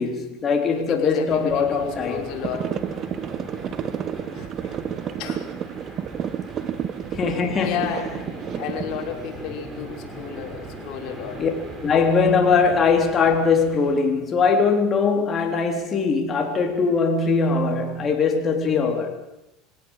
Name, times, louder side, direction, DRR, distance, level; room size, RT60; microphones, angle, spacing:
voice 1, 0.0-2.2 7.1-7.9 11.4-11.5 11.8-19.2, left 5 dB, 30° left, 3.9 m, -21 dB
voice 2, 0.7-2.7 4.3-4.8 5.2-5.4 7.6-8.1 8.6-11.4, left 7 dB, 60° left, 5.5 m, -32 dB
sound 1, 1.3-14.0, right 2 dB, 20° right, 6.0 m, -39 dB
sound 2, 2.4-9.1, right 9 dB, 40° right, 1.5 m, -31 dB
25.0 x 17.5 x 7.6 m
supercardioid pair, 115°, 0 cm